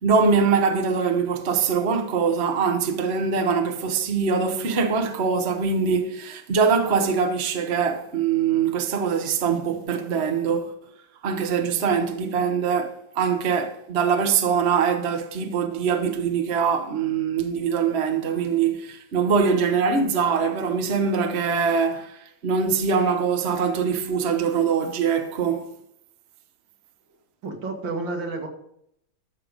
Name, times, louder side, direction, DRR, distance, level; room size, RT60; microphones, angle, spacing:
voice 1, 0.0-10.8 11.2-25.7, right 5 dB, 40° right, 1.2 m, -23 dB
voice 2, 27.4-28.5, right 3 dB, 75° right, 2.8 m, -30 dB
13.0 x 6.7 x 5.1 m
omnidirectional pair, 2.0 m